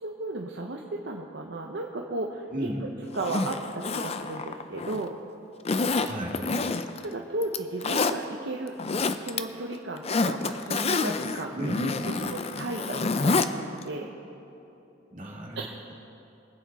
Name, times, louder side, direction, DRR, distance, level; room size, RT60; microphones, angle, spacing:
voice 1, 0.0-2.7 3.1-5.2 7.0-8.7 9.1-14.1 15.6-15.8, right 2 dB, 65° right, 0 dB, 0.8 m, -35 dB
voice 2, 2.5-2.8 6.0-6.5 11.5-11.8 15.1-15.7, equal, 40° right, -2 dB, 2.3 m, -34 dB
Zipper (clothing), 3.1-5.1 5.6-7.0 7.4-8.1 8.7-9.4 9.7-13.5 13.8-13.9, left 3 dB, 30° left, 0.5 m, -28 dB
23.5 x 8.5 x 4.2 m, 2.9 s
head